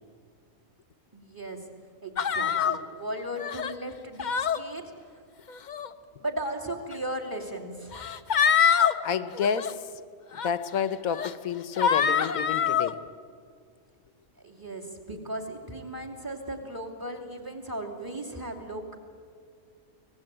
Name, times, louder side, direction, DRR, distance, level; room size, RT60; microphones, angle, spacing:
voice 1, 1.1-1.7 2.0-4.9 6.2-8.0 14.4-19.0, right 1 dB, 15° right, 4 dB, 2.8 m, -36 dB
sound 1, 2.2-2.8 3.4-3.7 4.2-4.6 5.5-5.9 6.9-7.0 7.9-8.9 9.3-9.7 10.3-10.5 11.1-11.3 11.8-12.9, left 7 dB, 45° left, 0.6 m, -25 dB
voice 2, 9.0-9.7 10.3-13.0, left 7 dB, 75° left, 14 dB, 1.4 m, -29 dB
25.0 x 18.0 x 9.0 m, 2.1 s
omnidirectional pair, 1.5 m